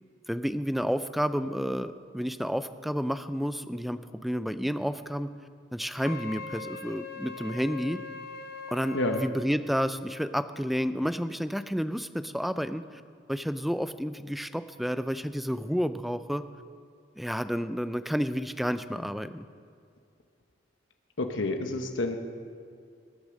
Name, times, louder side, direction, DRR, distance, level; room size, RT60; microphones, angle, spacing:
voice 1, 0.3-5.3 5.7-8.0 8.7-12.8 13.3-16.4 17.2-19.5, equal, ahead, 11 dB, 0.4 m, -30 dB
Wind instrument woodwind instrument, 6.0-9.4, left 4 dB, 55° left, 0.8 m, -41 dB
voice 2, 21.2-22.2, left 2 dB, 85° left, 5 dB, 1.0 m, -29 dB
20.5 x 8.5 x 6.4 m, 2.3 s
head